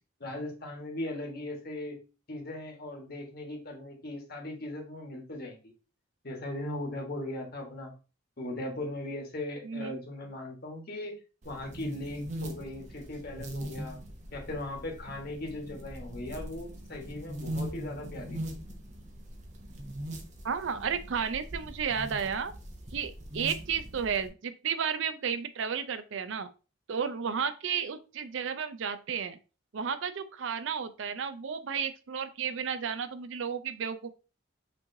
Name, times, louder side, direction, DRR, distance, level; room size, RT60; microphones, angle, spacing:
voice 1, 0.2-2.0 2.3-5.6 6.2-7.9 8.4-11.2 11.4-14.0 14.3-18.4, left 1 dB, 45° left, 1 dB, 1.3 m, -38 dB
voice 2, 9.6-10.0 20.4-22.5 22.9-26.5 26.9-29.4 29.7-34.1, right 7 dB, 65° right, 11 dB, 0.4 m, -33 dB
sound 1, 11.4-24.3, right 1 dB, 35° right, 0.7 m, -41 dB
5.9 x 3.1 x 2.7 m, 0.33 s
head